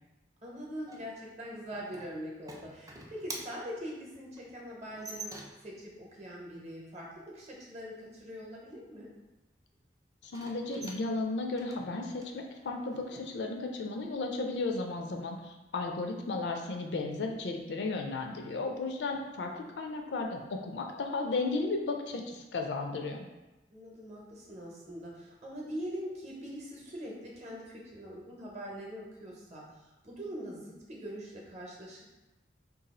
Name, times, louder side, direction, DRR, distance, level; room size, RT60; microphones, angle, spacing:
voice 1, 0.4-5.3 5.6-7.1 7.3-9.1 23.7-32.0, equal, 40° right, -2 dB, 0.8 m, -43 dB
sound 1, 0.9-5.8 10.2-13.3, right 2 dB, 20° right, 0.3 m, -47 dB
voice 2, 10.2-23.2, left 3 dB, 75° left, 3 dB, 0.4 m, -34 dB
2.6 x 2.3 x 4.0 m, 1.0 s
head